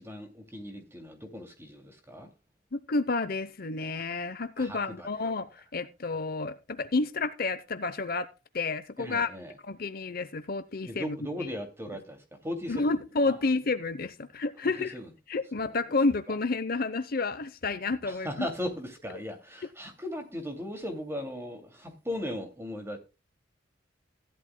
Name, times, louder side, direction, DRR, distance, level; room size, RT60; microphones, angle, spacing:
voice 1, 0.0-2.3 4.6-5.1 9.0-9.5 10.9-12.9 13.3-13.4 14.6-15.1 15.6-15.8 16.3-16.4 18.0-23.0, left 1 dB, 15° right, 2.5 m, -38 dB
voice 2, 2.7-8.3 8.5-9.3 9.6-11.1 12.7-14.9 15.3-18.5, left 3 dB, 50° left, 0.8 m, -30 dB
16.0 x 11.5 x 2.2 m
head